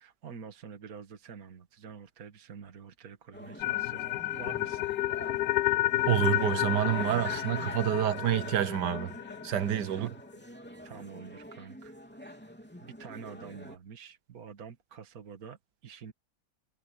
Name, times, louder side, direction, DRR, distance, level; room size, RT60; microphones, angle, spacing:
voice 1, 0.0-4.8 9.9-10.1 10.8-11.9 12.8-16.1, right 6 dB, 60° right, 2.0 m, -47 dB
sound 1, 3.3-13.8, equal, 5° left, 3.2 m, -45 dB
sound 2, 3.6-9.7, left 17 dB, 75° left, 1.1 m, -31 dB
voice 2, 6.1-9.1 9.4-10.1, right 11 dB, 75° right, 1.5 m, -28 dB
omnidirectional pair, 1.8 m